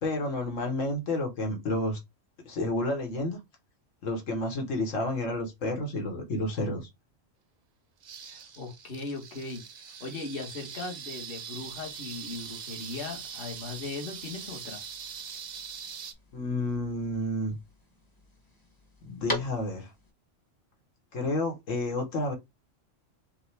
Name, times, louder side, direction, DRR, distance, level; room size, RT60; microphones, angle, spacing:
voice 1, 0.0-2.0 2.4-3.4 4.0-6.8 16.3-17.6 19.0-19.9 21.1-22.3, left 2 dB, 85° left, 1.6 m, -30 dB
sound 1, 8.0-16.1, right 7 dB, 50° right, 0.5 m, -42 dB
voice 2, 8.2-9.6 10.0-14.8, left 3 dB, 45° left, 1.4 m, -38 dB
sound 2, 11.6-20.1, left 1 dB, 20° left, 0.9 m, -44 dB
5.5 x 2.3 x 3.3 m
omnidirectional pair, 1.3 m